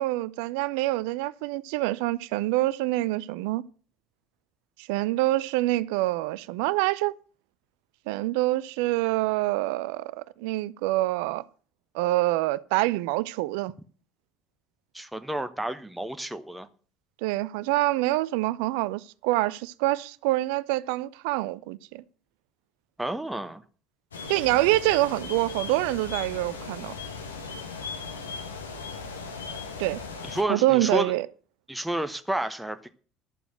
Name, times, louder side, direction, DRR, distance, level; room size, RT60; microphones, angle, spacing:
voice 1, 0.0-3.6 4.8-7.2 8.1-11.4 11.9-13.7 17.2-22.0 24.3-26.9 29.8-30.0 30.5-31.3, right 18 dB, 65° right, 0.5 m, -26 dB
voice 2, 14.9-16.7 23.0-23.6 30.3-31.1 31.7-32.8, right 1 dB, 5° right, 1.0 m, -30 dB
sound 1, 24.1-30.4, left 4 dB, 85° left, 1.6 m, -38 dB
11.5 x 6.9 x 7.8 m
figure-of-eight pair, 60°, 0 cm